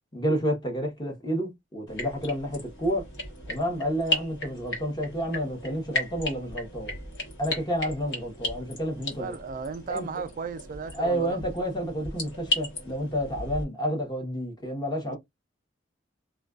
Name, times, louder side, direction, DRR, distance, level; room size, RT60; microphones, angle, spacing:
voice 1, 0.1-3.1 3.5-7.0 7.4-9.3 9.9-10.1 11.0-15.2, equal, 25° left, 0.9 m, -30 dB
sound 1, 1.9-13.6, left 2 dB, 70° left, 1.1 m, -35 dB
voice 2, 8.9-11.4 15.0-15.2, right 4 dB, 45° right, 0.3 m, -36 dB
2.4 x 2.2 x 2.3 m
head